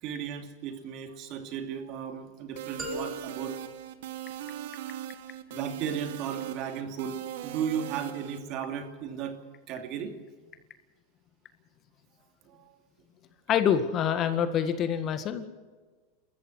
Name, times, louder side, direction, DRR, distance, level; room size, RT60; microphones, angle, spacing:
voice 1, 0.0-3.6 5.5-10.1 12.4-12.8, right 8 dB, 50° right, 5 dB, 2.7 m, -35 dB
sound 1, 2.6-8.4, right 12 dB, 70° right, 1.3 m, -39 dB
sound 2, 2.8-4.8, left 1 dB, 15° right, 4.2 m, -41 dB
voice 2, 13.5-15.5, left 8 dB, 40° left, 9 dB, 1.8 m, -26 dB
27.5 x 14.5 x 6.4 m, 1.4 s
hypercardioid pair, 110°, 0 cm